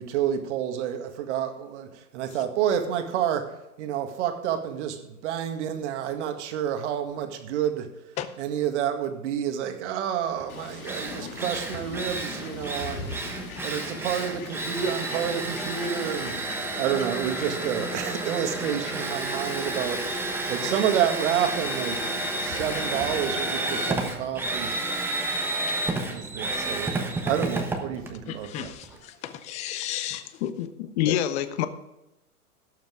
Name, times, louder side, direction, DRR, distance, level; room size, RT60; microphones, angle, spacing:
voice 1, 0.0-3.5 3.8-7.9 8.4-13.2 13.6-16.4 16.8-20.2 20.5-22.0 22.4-24.7 26.1-28.7, right 9 dB, 50° right, 1.9 m, -29 dB
Drill, 10.4-10.5 10.8-29.0, right 2 dB, 5° right, 1.0 m, -31 dB
Fowl, 10.5-24.1, left 5 dB, 65° left, 2.6 m, -41 dB
voice 2, 28.3-30.2 31.1-31.2, left 11 dB, 15° left, 0.6 m, -35 dB
voice 3, 30.4-31.7, left 11 dB, 45° left, 1.2 m, -26 dB
17.0 x 7.3 x 3.6 m
hypercardioid pair, 135°, 46 cm